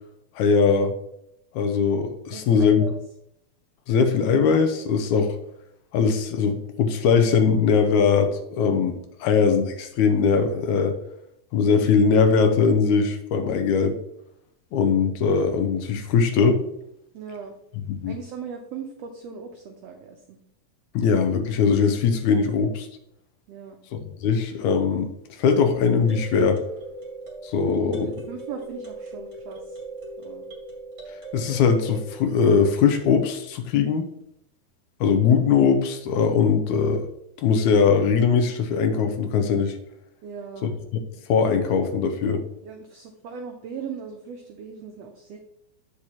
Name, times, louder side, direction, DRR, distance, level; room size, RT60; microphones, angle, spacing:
voice 1, 0.4-0.9 1.5-2.9 3.9-5.4 5.9-11.0 11.5-14.0 14.7-16.7 18.0-18.2 20.9-22.9 23.9-25.1 25.4-26.6 27.4-28.2 31.3-34.1 35.0-37.0 37.4-39.8 40.6-40.7 41.3-42.4, left 5 dB, 75° left, 7 dB, 2.0 m, -21 dB
voice 2, 2.3-2.9 17.1-17.5 18.0-20.4 23.5-23.8 28.1-29.8 30.2-30.5 40.2-40.8 42.6-45.4, right 6 dB, 85° right, 4 dB, 1.4 m, -38 dB
sound 1, 25.4-32.2, right 2 dB, 30° right, 1.6 m, -39 dB
8.3 x 6.4 x 2.9 m, 0.77 s
omnidirectional pair, 3.7 m